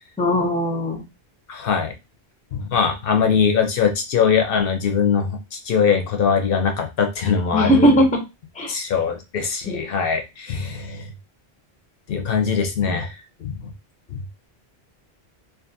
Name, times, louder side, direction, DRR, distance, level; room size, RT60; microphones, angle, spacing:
voice 1, 0.2-1.0 7.5-8.1 8.6-8.7 9.7-9.8 12.8-13.0, equal, 10° left, 2 dB, 0.4 m, -18 dB
voice 2, 1.5-1.9 2.5-5.3 5.7-8.0 8.7-11.0 12.1-13.1 13.4-13.5, left 6 dB, 65° left, 4 dB, 0.7 m, -21 dB
2.5 x 2.5 x 2.5 m, 0.25 s
omnidirectional pair, 1.0 m